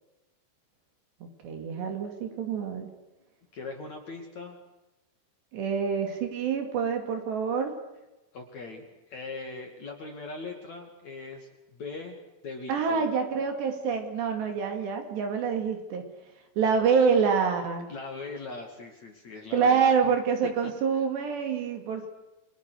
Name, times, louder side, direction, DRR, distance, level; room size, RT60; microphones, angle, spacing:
voice 1, 1.2-2.9 5.5-7.7 12.7-16.1 16.6-17.9 19.5-22.1, right 6 dB, 65° right, 4 dB, 4.6 m, -26 dB
voice 2, 3.5-4.6 8.3-13.1 17.9-19.9 20.6-20.7, left 3 dB, 45° left, 3 dB, 3.1 m, -40 dB
29.5 x 23.5 x 6.5 m, 1.0 s
omnidirectional pair, 5.6 m